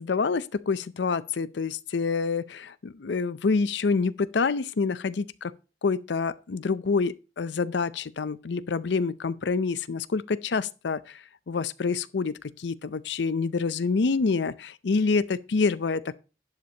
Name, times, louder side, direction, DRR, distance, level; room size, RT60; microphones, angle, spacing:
voice 1, 0.0-5.5 5.8-16.2, left 4 dB, 75° left, 0.5 m, -27 dB
11.5 x 10.5 x 2.8 m
head